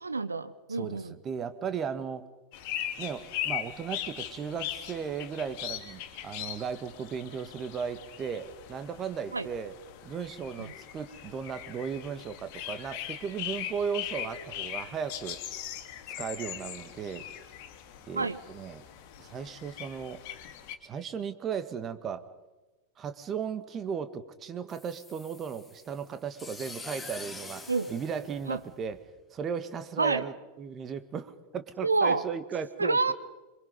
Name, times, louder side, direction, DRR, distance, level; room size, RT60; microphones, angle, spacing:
voice 1, 0.0-1.1 9.3-9.5 10.6-10.7 18.1-18.4 27.7-27.9 28.5-28.6 30.0-30.2 31.8-32.2 32.8-33.1, right 3 dB, 80° right, 13 dB, 1.3 m, -27 dB
voice 2, 0.7-2.3 3.0-9.7 10.0-15.4 16.2-17.2 18.1-18.8 19.2-20.2 20.8-22.3 23.0-29.0 29.3-33.1, right 7 dB, 25° right, 11 dB, 2.0 m, -36 dB
sound 1, 2.5-20.8, left 11 dB, 45° left, 2.7 m, -40 dB
sound 2, 24.7-29.0, left 3 dB, 5° left, 4.3 m, -45 dB
27.0 x 24.0 x 5.5 m, 1.1 s
figure-of-eight pair, 90°, 0 cm